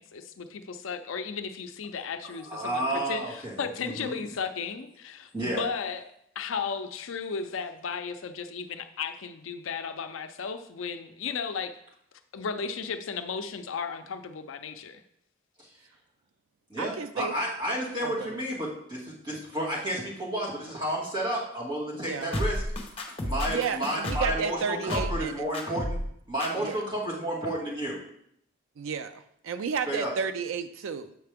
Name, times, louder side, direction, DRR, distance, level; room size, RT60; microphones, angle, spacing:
voice 1, 0.0-6.1 6.4-11.7 12.3-15.0, left 5 dB, 80° left, 9 dB, 0.5 m, -35 dB
voice 2, 2.3-3.5 3.8-4.2 5.3-5.6 16.7-22.6 23.2-26.0 26.3-28.0 29.9-30.1, right 1 dB, 20° right, -6 dB, 2.2 m, -31 dB
voice 3, 16.8-17.3 18.0-18.4 21.9-22.3 23.5-25.5 26.6-26.8 28.8-29.1 29.4-31.2, right 6 dB, 85° right, 9 dB, 0.4 m, -32 dB
sound 1, 22.3-24.4 24.9-25.3 25.5-26.1 26.4-26.5, left 1 dB, 30° left, 1.0 m, -31 dB
7.5 x 5.7 x 3.5 m, 0.72 s
head